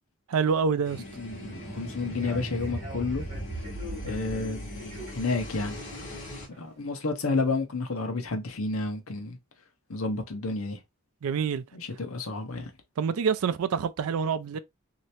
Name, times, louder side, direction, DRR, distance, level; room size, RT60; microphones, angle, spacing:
voice 1, 0.3-1.0 11.2-11.6 13.0-14.6, right 6 dB, 90° right, 0.4 m, -26 dB
sound 1, 0.8-6.5, right 1 dB, 35° left, 1.4 m, -38 dB
voice 2, 1.2-3.3 4.0-5.8 6.6-9.4 9.9-10.8 11.7-12.7, left 3 dB, 80° left, 0.9 m, -31 dB
Human voice / Subway metro underground, 1.3-6.8, left 1 dB, 30° right, 1.6 m, -47 dB
3.2 x 2.8 x 2.8 m
head